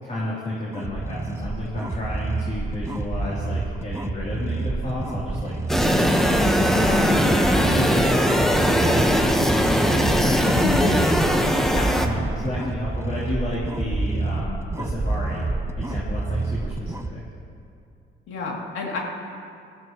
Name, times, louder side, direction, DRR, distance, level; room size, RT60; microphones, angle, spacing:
voice 1, 0.0-6.1 6.5-9.0 9.5-15.4 15.8-17.2, left 1 dB, 40° left, -8 dB, 3.3 m, -31 dB
sound 1, 0.7-17.1, right 3 dB, 15° right, 0.6 m, -28 dB
sound 2, 5.7-12.1, equal, ahead, 1.2 m, -20 dB
voice 2, 18.3-19.0, left 3 dB, 80° left, -2 dB, 2.8 m, -31 dB
19.0 x 14.5 x 3.1 m, 2.5 s
cardioid pair, 90°, 20 cm